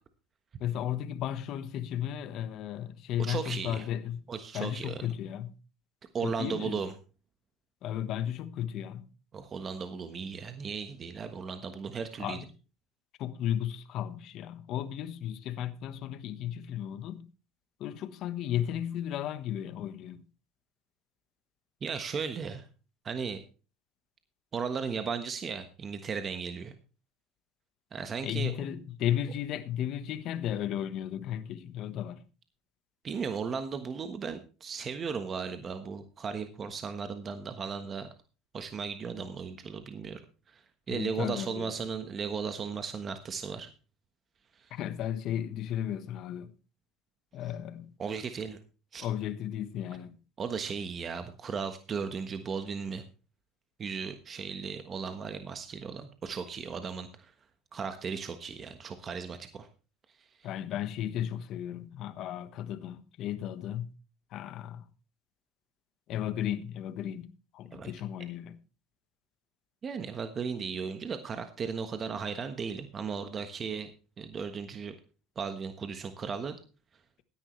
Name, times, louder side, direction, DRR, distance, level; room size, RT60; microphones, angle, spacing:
voice 1, 0.6-4.2 4.5-5.5 6.2-6.9 7.8-9.1 12.2-12.5 13.2-17.3 17.8-20.2 28.2-32.2 39.2-39.3 40.9-41.7 44.7-46.5 47.3-47.9 49.0-50.2 60.4-63.9 64.3-64.9 66.1-68.6, left 10 dB, 55° left, 1.2 m, -34 dB
voice 2, 3.2-3.9 4.3-5.0 6.1-6.9 9.3-12.4 21.8-22.7 23.0-23.4 24.5-26.7 27.9-28.5 33.0-38.1 38.5-40.2 40.5-43.7 44.6-44.7 48.0-48.6 48.9-49.1 50.4-53.0 53.8-57.3 57.7-59.7 60.2-60.5 67.7-67.9 69.8-73.9 74.2-74.9 75.3-76.6, right 6 dB, 35° right, 1.3 m, -36 dB
16.5 x 10.0 x 3.2 m
supercardioid pair, 105°, 0 cm